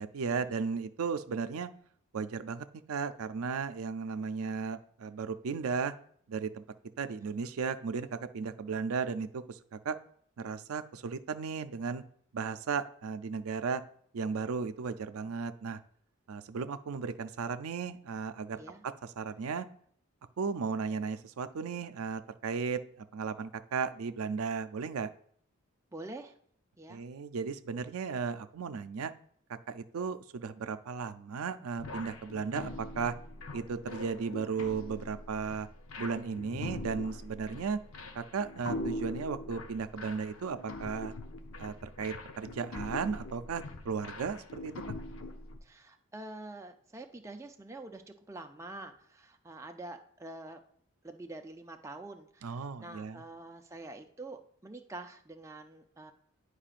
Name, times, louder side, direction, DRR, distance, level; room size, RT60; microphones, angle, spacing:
voice 1, 0.0-1.7 2.1-5.9 6.3-6.6 7.0-9.6 9.8-10.0 10.4-12.0 12.3-13.8 14.1-15.8 16.3-18.6 19.2-19.7 20.4-25.1 26.9-29.1 29.7-33.1 33.5-35.7 36.0-37.8 38.1-41.1 41.6-44.7 52.4-53.2, right 5 dB, 90° right, 11 dB, 0.4 m, -35 dB
voice 2, 25.9-26.3 26.8-27.0 45.6-50.6 51.0-56.1, right 2 dB, 15° right, 4 dB, 0.4 m, -46 dB
sound 1, 31.8-45.6, left 2 dB, 75° left, 0.7 m, -42 dB
10.5 x 4.8 x 2.5 m, 0.63 s
head